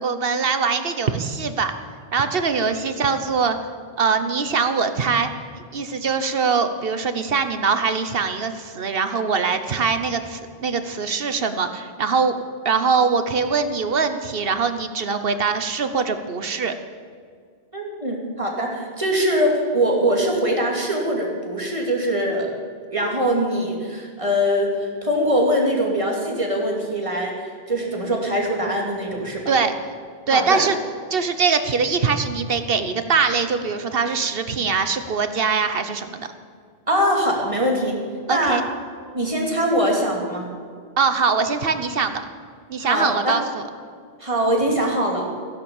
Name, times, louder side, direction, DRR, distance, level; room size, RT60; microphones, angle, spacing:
voice 1, 0.0-1.7 2.1-3.6 4.0-5.3 5.7-12.4 12.6-16.7 29.5-29.7 30.3-30.8 31.1-36.3 38.3-38.6 41.0-42.2 42.7-43.6, right 5 dB, 65° right, 9 dB, 1.2 m, -22 dB
voice 2, 17.7-22.5 22.9-29.5 30.3-30.6 36.9-38.0 38.3-38.6 39.1-40.5 42.8-43.4 44.2-45.3, equal, 30° right, -1 dB, 2.8 m, -22 dB
16.0 x 11.0 x 7.2 m, 2.1 s
omnidirectional pair, 1.0 m